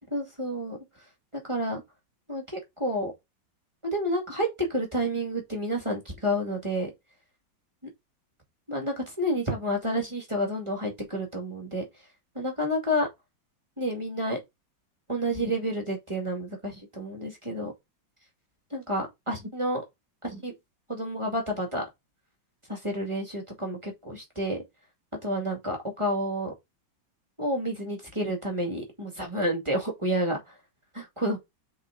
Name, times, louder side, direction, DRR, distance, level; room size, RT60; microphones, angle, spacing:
voice 1, 0.1-0.8 1.3-1.8 2.3-3.1 3.8-6.9 8.7-11.8 12.3-13.1 13.8-14.4 15.1-17.7 18.7-19.8 20.2-20.5 20.9-21.8 22.7-24.6 25.2-26.5 27.4-30.5 30.9-31.4, equal, 15° right, 2.1 m, -30 dB
6.4 x 4.8 x 3.8 m
omnidirectional pair, 2.1 m